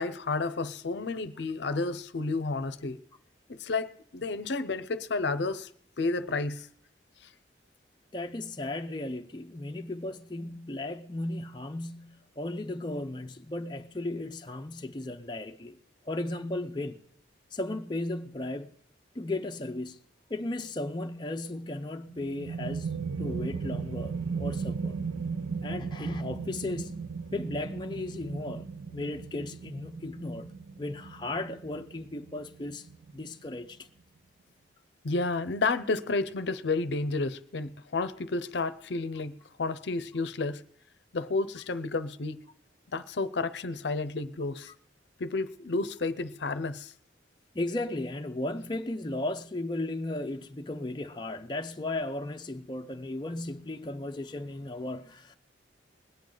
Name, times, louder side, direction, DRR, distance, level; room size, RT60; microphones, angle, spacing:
voice 1, 0.0-3.0 3.5-5.7 6.0-6.7 7.2-7.3 35.0-40.6 41.1-42.5 42.9-44.7 45.2-46.9, left 3 dB, 70° left, 0.6 m, -31 dB
voice 2, 8.1-15.8 16.1-17.0 17.5-18.7 19.1-20.0 20.3-22.9 23.2-25.0 25.6-27.1 27.3-32.9 33.1-33.8 47.5-55.3, left 2 dB, 25° left, 0.5 m, -35 dB
sound 1, 22.1-33.5, right 5 dB, 80° right, 0.6 m, -36 dB
21.0 x 9.1 x 3.9 m
head